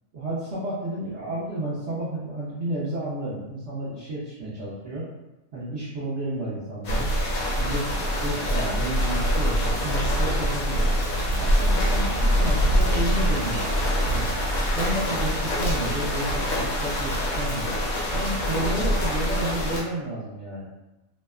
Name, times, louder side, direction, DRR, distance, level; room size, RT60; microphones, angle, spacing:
voice 1, 0.1-5.0 5.5-7.1 7.6-10.9 11.4-13.6 14.1-14.3 14.7-17.8 18.1-20.7, right 1 dB, 60° right, -10 dB, 0.9 m, -31 dB
sound 1, 6.8-19.8, equal, 75° left, 1.1 m, -24 dB
2.8 x 2.1 x 2.3 m, 0.97 s
omnidirectional pair, 1.5 m